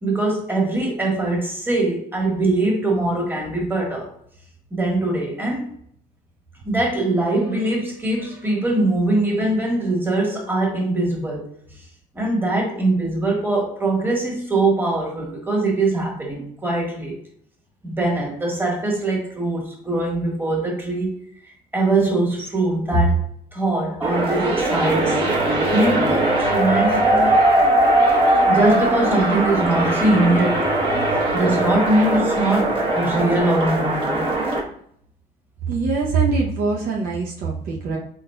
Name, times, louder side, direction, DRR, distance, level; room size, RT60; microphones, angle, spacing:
voice 1, 0.0-4.1 4.7-5.7 6.6-11.4 12.1-17.1 17.8-21.3 21.7-23.2 23.5-25.2 25.7-27.5 28.5-30.7 31.3-34.3, right 2 dB, 10° right, -2 dB, 1.4 m, -22 dB
sound 1, 24.0-34.6, right 1 dB, 30° right, 0.9 m, -20 dB
voice 2, 35.7-38.0, right 4 dB, 60° right, -1 dB, 0.7 m, -23 dB
3.9 x 3.8 x 2.2 m, 0.66 s
cardioid pair, 110°, 17 cm